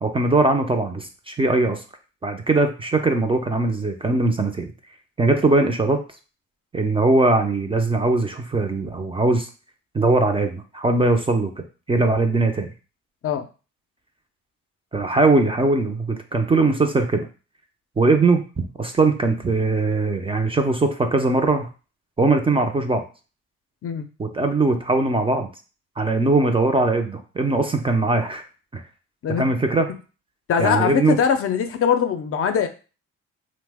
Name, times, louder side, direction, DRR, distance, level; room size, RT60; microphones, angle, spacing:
voice 1, 0.0-1.8 2.2-4.7 5.2-6.0 6.7-9.5 9.9-12.7 14.9-17.3 18.0-21.7 22.2-23.0 24.2-25.5 26.0-28.4 28.7-28.8 29.4-29.9 30.6-31.2, right 3 dB, 20° right, 5 dB, 0.4 m, -20 dB
voice 2, 30.5-32.7, left 7 dB, 50° left, 7 dB, 0.5 m, -21 dB
2.9 x 2.1 x 3.4 m, 0.34 s
cardioid pair, 90°, 30 cm